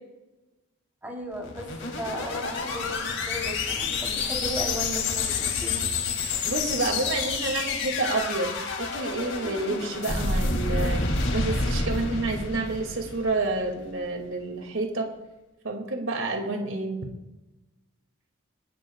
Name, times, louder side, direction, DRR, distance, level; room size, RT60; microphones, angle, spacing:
voice 1, 1.0-5.8, equal, 10° right, -1 dB, 3.5 m, -36 dB
sound 1, 1.3-13.7, left 4 dB, 70° left, 2.8 m, -29 dB
voice 2, 6.4-15.1 15.6-17.0, right 2 dB, 90° right, 3 dB, 2.4 m, -29 dB
27.0 x 12.0 x 2.4 m, 1.0 s
head